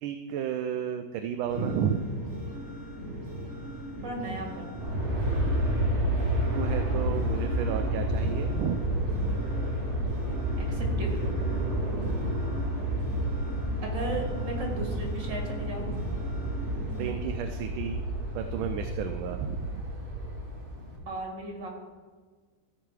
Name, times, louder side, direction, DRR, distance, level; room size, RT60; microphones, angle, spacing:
voice 1, 0.0-2.0 6.5-8.8 12.0-12.5 17.0-18.0 18.3-19.9, right 9 dB, 85° right, 7 dB, 1.4 m, -33 dB
sound 1, 1.5-17.1, right 1 dB, 50° right, 3.7 m, -39 dB
voice 2, 4.0-4.8 10.6-11.3 13.8-16.0 21.1-21.8, right 2 dB, 65° right, 0 dB, 2.7 m, -35 dB
Aircraft, 4.8-21.0, right 1 dB, 25° right, 2.2 m, -30 dB
14.0 x 5.7 x 4.8 m, 1.4 s
omnidirectional pair, 2.2 m